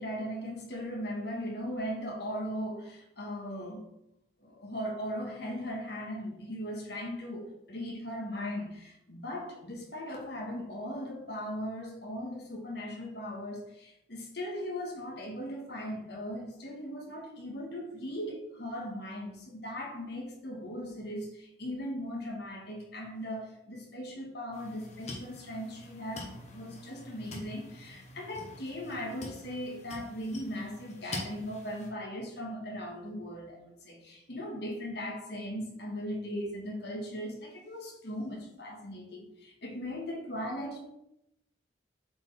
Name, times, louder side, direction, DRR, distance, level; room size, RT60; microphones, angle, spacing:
voice 1, 0.0-3.9 4.4-40.8, equal, 55° left, 0 dB, 1.7 m, -38 dB
sound 1, 24.5-31.9, left 1 dB, 35° left, 1.4 m, -45 dB
7.5 x 4.7 x 3.6 m, 0.81 s
head